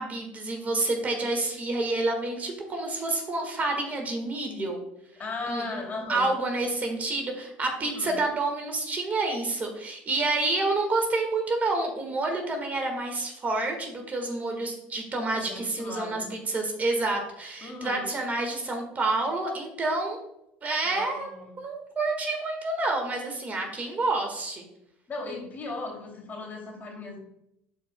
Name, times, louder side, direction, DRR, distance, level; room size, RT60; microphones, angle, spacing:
voice 1, 0.0-4.8 5.5-5.8 6.1-20.2 20.6-21.3 21.6-24.6, right 2 dB, 30° right, 2 dB, 1.6 m, -28 dB
voice 2, 5.2-6.3 7.8-8.2 15.4-16.2 17.6-18.1 20.8-21.5 25.1-27.2, left 3 dB, 35° left, -1 dB, 2.7 m, -37 dB
11.5 x 4.5 x 2.2 m, 0.81 s
supercardioid pair, 85°, 5 cm